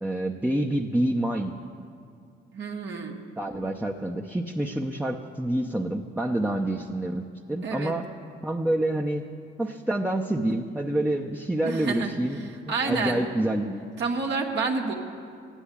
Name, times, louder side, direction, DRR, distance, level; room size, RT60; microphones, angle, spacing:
voice 1, 0.0-1.5 3.4-8.0 8.4-9.2 9.6-12.5 12.9-13.9, right 1 dB, 5° right, 1 dB, 0.8 m, -27 dB
voice 2, 2.5-3.2 7.6-8.0 11.6-13.2 14.0-14.9, right 4 dB, 60° right, 0 dB, 1.6 m, -29 dB
14.0 x 10.0 x 8.5 m, 2.4 s
cardioid pair, 90°, 20 cm